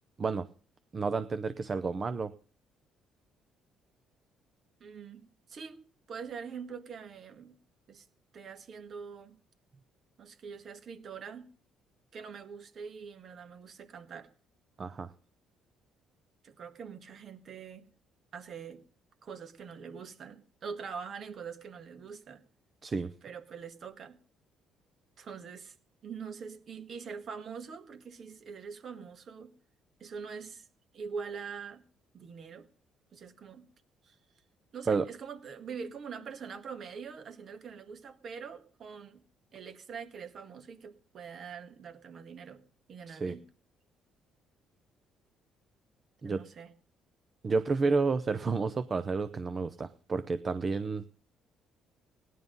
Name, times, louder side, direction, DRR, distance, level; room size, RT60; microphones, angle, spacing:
voice 1, 0.9-2.3 14.8-15.1 22.8-23.1 34.9-35.1 43.1-43.3 46.2-46.4 47.4-51.0, right 4 dB, 30° right, 12 dB, 0.7 m, -30 dB
voice 2, 4.8-7.6 7.9-8.1 8.3-9.4 10.2-11.5 12.1-14.3 16.4-17.9 18.3-18.8 19.2-22.4 23.2-24.2 25.2-25.8 26.0-29.5 30.0-30.7 30.9-31.8 32.1-32.7 33.1-33.7 34.0-34.2 34.7-39.2 39.5-42.6 42.9-43.4 46.2-46.7, right 6 dB, 45° right, 9 dB, 1.8 m, -44 dB
17.5 x 11.0 x 5.4 m, 0.42 s
cardioid pair, 125°, 0 cm